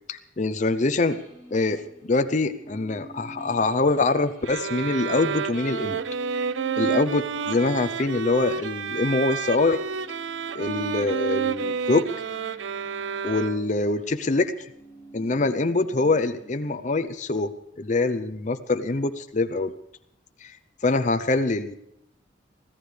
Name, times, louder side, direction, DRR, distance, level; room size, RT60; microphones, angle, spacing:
voice 1, 0.1-1.2 1.5-6.0 6.8-9.8 10.5-12.1 13.2-14.5 15.1-17.5 17.8-19.7 20.4-20.5 20.8-21.8, left 3 dB, 40° left, 9 dB, 0.6 m, -24 dB
sound 1, 1.0-11.6 11.9-17.0, right 1 dB, 15° right, 7.3 m, -50 dB
sound 2, 4.4-13.9, right 6 dB, 70° right, 0.5 m, -30 dB
24.0 x 15.0 x 3.3 m, 0.76 s
head